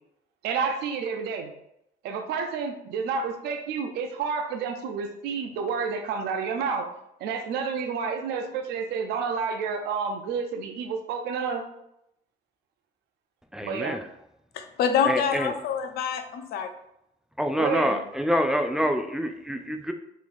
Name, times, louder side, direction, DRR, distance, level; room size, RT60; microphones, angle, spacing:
voice 1, 0.4-1.5 2.0-6.9 7.2-11.6 13.6-14.0 17.6-18.0, right 5 dB, 80° right, 5 dB, 0.5 m, -30 dB
voice 2, 13.5-14.0 15.1-15.5 17.4-19.9, equal, 5° right, 6 dB, 0.3 m, -26 dB
voice 3, 14.5-16.7, left 7 dB, 70° left, 7 dB, 0.5 m, -26 dB
4.0 x 3.0 x 2.6 m, 0.80 s
cardioid pair, 110°, 17 cm